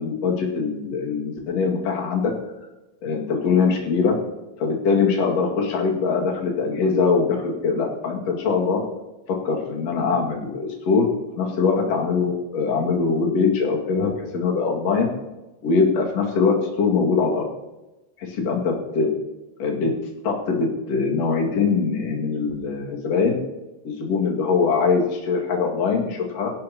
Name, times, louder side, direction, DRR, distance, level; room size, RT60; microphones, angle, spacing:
voice 1, 0.0-2.3 3.0-4.1 4.6-8.8 9.3-11.1 11.4-15.1 15.6-17.4 18.4-19.1 19.6-19.9 20.2-23.4 23.8-26.5, left 5 dB, 50° left, -1 dB, 2.1 m, -22 dB
24.5 x 12.0 x 2.9 m, 1.0 s
omnidirectional pair, 6.0 m